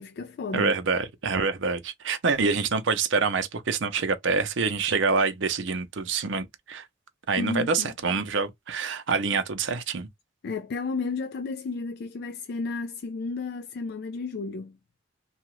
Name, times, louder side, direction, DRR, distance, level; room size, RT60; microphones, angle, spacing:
voice 1, 0.0-0.7 7.4-7.9 10.4-14.8, left 4 dB, 55° left, 0.3 m, -32 dB
voice 2, 0.5-6.9 7.3-10.1, right 4 dB, 70° right, 0.6 m, -26 dB
2.8 x 2.3 x 3.0 m
head